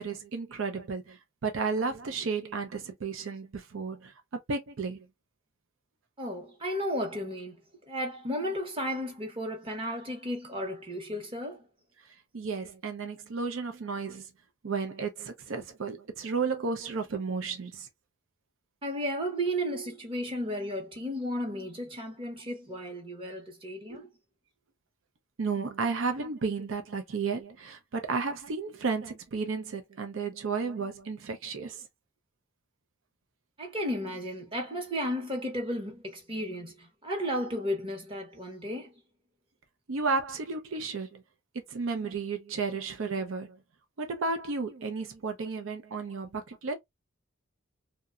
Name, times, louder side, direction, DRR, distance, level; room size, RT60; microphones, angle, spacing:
voice 1, 0.0-4.1 4.5-5.1 12.3-14.3 14.6-17.9 23.9-24.0 25.4-31.9 39.9-41.2 41.7-43.6 44.0-46.7, right 4 dB, 75° right, 0.5 m, -33 dB
voice 2, 6.2-7.6 7.9-11.6 18.8-24.1 33.6-38.9, equal, 25° right, 0.8 m, -34 dB
2.8 x 2.2 x 2.3 m
head